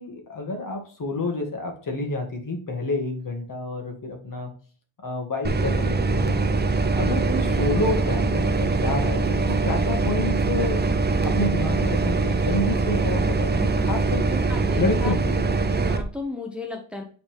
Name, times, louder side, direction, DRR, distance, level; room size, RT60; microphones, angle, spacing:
voice 1, 0.0-4.5 5.0-6.4 7.0-10.8 11.2-14.5 14.8-15.6, left 2 dB, 40° left, 4 dB, 1.9 m, -29 dB
sound 1, 5.4-16.0, right 3 dB, 20° right, 0.6 m, -23 dB
voice 2, 14.5-15.1 15.8-17.0, left 3 dB, ahead, 2 dB, 1.0 m, -34 dB
7.7 x 4.1 x 3.5 m, 0.43 s
cardioid pair, 115°, 48 cm